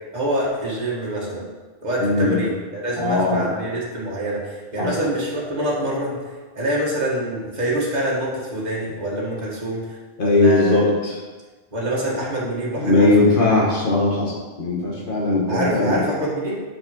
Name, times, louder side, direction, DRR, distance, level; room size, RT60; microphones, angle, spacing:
voice 1, 0.1-1.5 1.8-10.8 11.7-13.1 15.5-16.6, right 1 dB, 40° right, -5 dB, 2.0 m, -26 dB
voice 2, 2.0-2.4 3.0-3.5 4.8-4.9 10.2-11.2 12.8-16.0, left 2 dB, 50° left, -3 dB, 1.8 m, -19 dB
6.4 x 5.9 x 5.5 m, 1.3 s
omnidirectional pair, 1.2 m